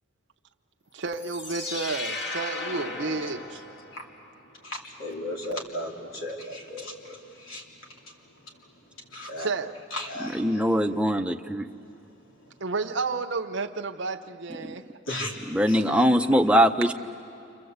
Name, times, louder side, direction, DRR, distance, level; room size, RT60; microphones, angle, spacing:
voice 1, 0.9-3.6 9.4-9.7 12.6-14.8 15.8-15.9, right 3 dB, 65° right, 4 dB, 0.8 m, -31 dB
sound 1, 1.1-4.2, left 2 dB, 55° left, 2.3 m, -36 dB
voice 2, 4.6-7.6 9.1-9.5 9.9-10.4 15.1-15.4 15.7-15.8, left 1 dB, 85° left, 0 dB, 3.6 m, -35 dB
voice 3, 10.3-11.7 14.6-14.8 15.5-16.9, equal, 5° right, 6 dB, 0.6 m, -22 dB
29.5 x 25.5 x 8.0 m, 2.5 s
head